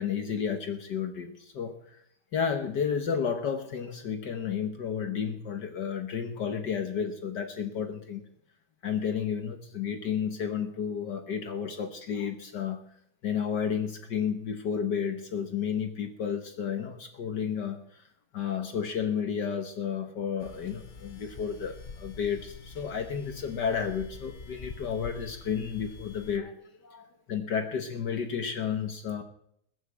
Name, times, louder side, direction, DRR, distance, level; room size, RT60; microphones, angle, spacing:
voice 1, 0.0-1.8 2.3-8.2 8.8-12.8 13.2-17.8 18.3-26.5 26.8-29.2, left 7 dB, 60° left, 7 dB, 1.7 m, -32 dB
sound 1, 20.4-26.4, left 4 dB, 75° left, 0.4 m, -46 dB
21.0 x 7.2 x 8.1 m, 0.70 s
omnidirectional pair, 2.3 m